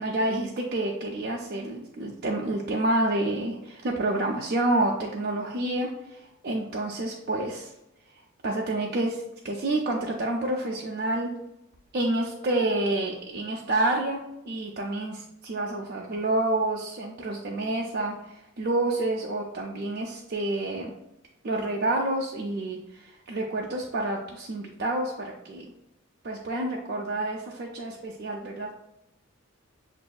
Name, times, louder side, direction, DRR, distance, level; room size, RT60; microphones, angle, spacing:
voice 1, 0.0-7.7 8.4-11.3 11.9-14.2 14.5-20.9 21.4-25.6 26.2-28.7, right 2 dB, 50° right, -2 dB, 0.5 m, -28 dB
6.9 x 2.6 x 2.3 m, 0.87 s
head